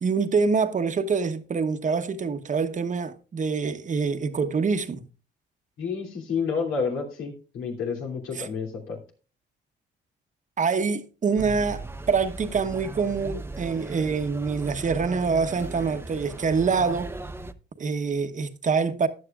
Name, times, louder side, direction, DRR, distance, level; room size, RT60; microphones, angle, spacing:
voice 1, 0.0-5.0 8.3-8.5 10.6-17.1 17.8-19.1, right 5 dB, 40° right, 1.1 m, -25 dB
voice 2, 5.8-9.0, left 5 dB, 90° left, 3.0 m, -30 dB
sound 1, 11.4-17.5, right 2 dB, 10° right, 0.7 m, -37 dB
14.0 x 9.7 x 2.4 m
cardioid pair, 90°, 20 cm